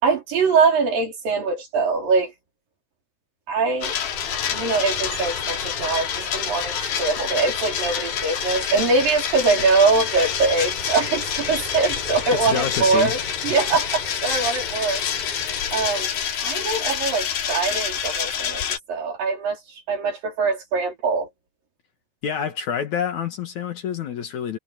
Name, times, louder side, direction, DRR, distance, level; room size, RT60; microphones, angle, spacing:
voice 1, 0.0-2.3 3.5-4.0 4.5-15.0 15.7-16.1 16.4-18.6 18.9-21.3, right 4 dB, 70° right, 6.2 m, -22 dB
Ocean, 3.7-16.4, left 1 dB, 10° left, 5.6 m, -39 dB
sound 1, 3.8-18.8, left 8 dB, 80° left, 4.1 m, -27 dB
voice 2, 12.4-13.2 13.5-13.7 22.2-24.6, left 8 dB, 60° left, 2.5 m, -27 dB
omnidirectional pair, 4.2 m